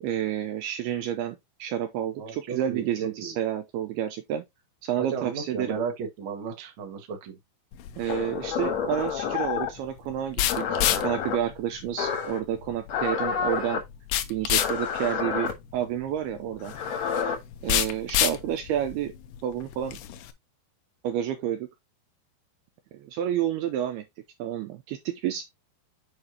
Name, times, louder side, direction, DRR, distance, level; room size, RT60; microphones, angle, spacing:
voice 1, 0.0-4.4 4.8-5.8 8.0-13.8 14.3-16.7 17.6-19.1 19.4-20.0 21.0-21.7 22.9-24.1 24.4-25.4, right 10 dB, 85° right, 2.3 m, -30 dB
voice 2, 2.2-3.3 5.0-7.4, right 5 dB, 70° right, 1.2 m, -34 dB
sound 1, 7.7-20.3, left 12 dB, 80° left, 2.6 m, -31 dB
sound 2, 8.1-9.8 10.5-11.4 12.0-12.4 12.9-13.8 14.6-15.5 16.6-17.4, left 7 dB, 60° left, 1.8 m, -29 dB
8.5 x 4.8 x 2.7 m
omnidirectional pair, 5.2 m